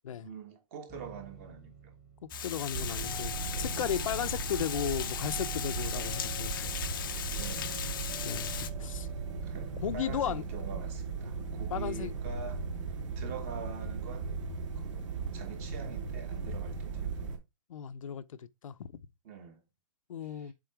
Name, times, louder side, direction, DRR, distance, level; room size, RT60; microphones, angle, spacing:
voice 1, 0.2-1.9 3.7-4.0 7.4-7.8 9.4-14.5 14.7-17.1 19.2-19.6 20.2-20.5, right 5 dB, 25° right, 1.2 m, -45 dB
sound 1, 0.9-10.2, right 3 dB, ahead, 1.1 m, -47 dB
voice 2, 2.2-6.7 8.2-9.1 9.8-10.7 11.7-12.1 17.7-18.9 20.1-20.5, left 9 dB, 70° left, 0.8 m, -35 dB
Water, 2.3-8.7, left 10 dB, 40° left, 0.6 m, -38 dB
sound 2, 2.7-17.4, right 5 dB, 60° right, 3.0 m, -37 dB
7.7 x 3.9 x 4.6 m
hypercardioid pair, 180°, 18 cm